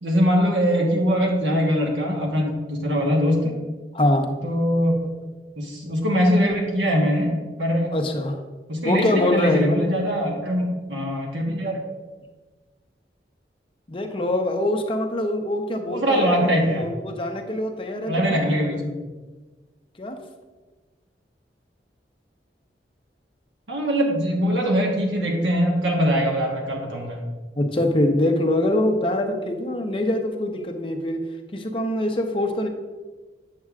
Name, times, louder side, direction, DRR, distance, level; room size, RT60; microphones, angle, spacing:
voice 1, 0.0-3.5 4.4-5.2 5.6-8.0 8.7-11.8 15.9-16.9 18.1-19.0 23.7-27.3, equal, 90° right, -1 dB, 1.3 m, -22 dB
voice 2, 3.9-4.3 7.9-8.4 8.8-9.7 13.9-18.5 20.0-20.2 27.6-31.2 31.5-32.7, left 1 dB, 30° left, 5 dB, 0.6 m, -24 dB
8.5 x 7.4 x 2.4 m, 1.3 s
head